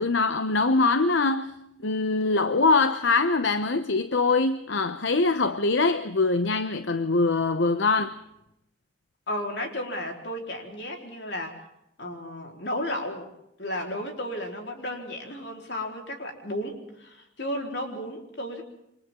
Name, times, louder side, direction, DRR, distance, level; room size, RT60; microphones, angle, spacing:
voice 1, 0.0-1.6 1.8-8.1, left 3 dB, 80° left, 0.9 m, -23 dB
voice 2, 9.3-11.6 12.0-13.3 13.6-18.6, left 1 dB, 60° left, 4.3 m, -33 dB
28.0 x 25.0 x 3.8 m
head